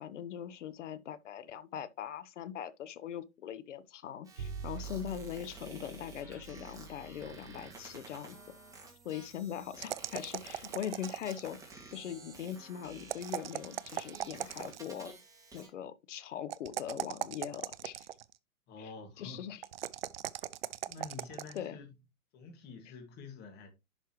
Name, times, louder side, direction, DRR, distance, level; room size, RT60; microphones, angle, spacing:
voice 1, 0.0-8.4 9.0-11.6 11.9-15.1 15.5-18.1 18.8-18.9 19.2-19.6 21.5-21.8, left 9 dB, 55° left, 1.1 m, -41 dB
sound 1, 4.2-15.7, right 3 dB, 10° right, 2.2 m, -52 dB
Bowed string instrument, 4.4-10.8, right 5 dB, 60° right, 4.4 m, -48 dB
sound 2, 9.8-11.6 13.0-14.9 16.5-18.3 19.6-21.6, right 12 dB, 45° right, 0.5 m, -39 dB
voice 2, 18.7-19.4 20.8-21.9 22.3-23.7, left 4 dB, 25° left, 2.1 m, -48 dB
11.0 x 5.5 x 3.1 m
hypercardioid pair, 145°, 43 cm